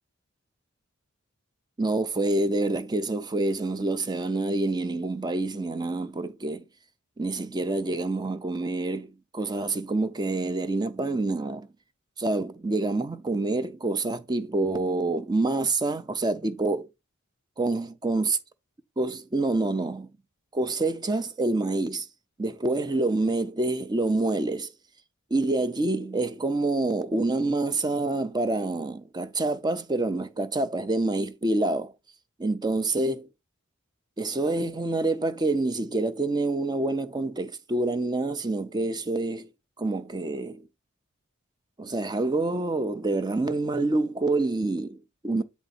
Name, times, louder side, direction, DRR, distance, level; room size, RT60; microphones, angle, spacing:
voice 1, 1.8-6.6 7.2-11.7 12.2-16.9 17.6-18.4 19.0-20.1 20.5-22.1 22.4-24.7 25.3-31.9 32.4-33.3 34.2-39.5 39.8-40.7 41.8-45.4, right 2 dB, 20° right, 0.5 m, -27 dB
8.2 x 4.0 x 4.0 m
head